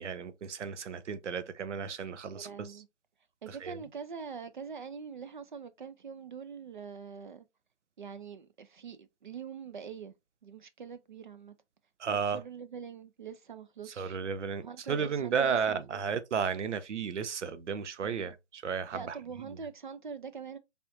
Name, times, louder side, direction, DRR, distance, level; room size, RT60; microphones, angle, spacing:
voice 1, 0.0-2.7 3.6-3.8 12.0-12.4 13.9-19.2, right 6 dB, 80° right, 0.7 m, -33 dB
voice 2, 2.3-2.9 3.4-7.5 8.0-10.2 10.4-11.5 12.1-14.2 14.6-16.0 18.9-20.6, right 6 dB, 45° right, 0.5 m, -44 dB
4.2 x 3.5 x 2.5 m
hypercardioid pair, 155°, 35 cm